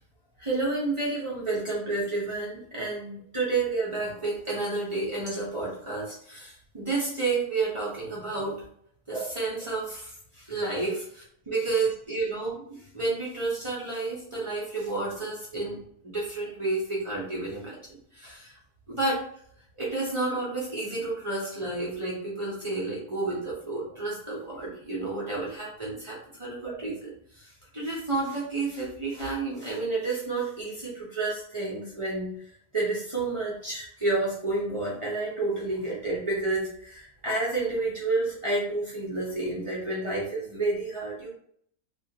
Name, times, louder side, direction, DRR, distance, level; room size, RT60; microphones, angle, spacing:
voice 1, 0.4-8.6 9.1-11.0 11.5-17.8 18.1-18.6 18.9-19.3 19.8-32.3 32.7-41.3, right 3 dB, 45° right, -7 dB, 0.4 m, -30 dB
2.4 x 2.2 x 2.7 m, 0.65 s
omnidirectional pair, 1.6 m